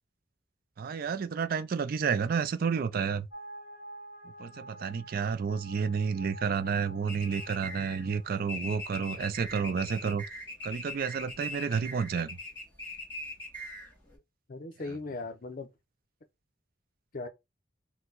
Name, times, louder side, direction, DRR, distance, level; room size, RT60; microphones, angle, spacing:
voice 1, 0.8-3.3 4.4-10.2 10.6-12.3, right 6 dB, 50° right, 0.4 m, -30 dB
sound 1, 3.3-8.5, right 1 dB, 35° right, 1.5 m, -49 dB
sound 2, 7.1-14.2, left 1 dB, 10° left, 2.0 m, -41 dB
voice 2, 14.5-15.7 17.1-17.3, left 3 dB, 45° left, 0.6 m, -38 dB
4.4 x 2.1 x 3.8 m
head